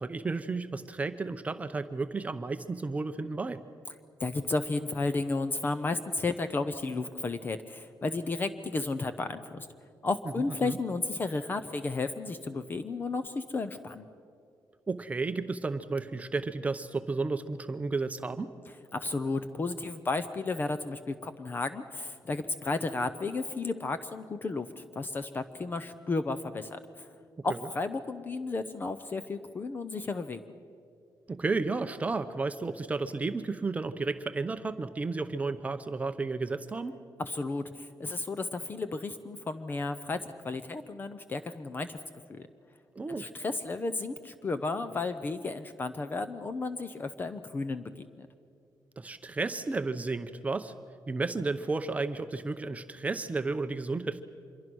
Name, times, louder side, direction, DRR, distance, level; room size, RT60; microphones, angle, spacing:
voice 1, 0.0-3.6 10.6-10.8 14.9-18.5 27.4-27.6 31.3-37.0 43.0-43.3 49.0-50.7 51.1-54.2, right 3 dB, 20° right, 9 dB, 0.7 m, -32 dB
voice 2, 4.2-9.7 10.0-14.1 18.9-27.1 27.4-30.4 37.2-40.2 40.4-42.0 42.3-42.5 43.2-48.3, left 3 dB, 30° left, 11 dB, 0.8 m, -33 dB
26.0 x 22.5 x 6.3 m, 2.3 s
cardioid pair, 155°, 7 cm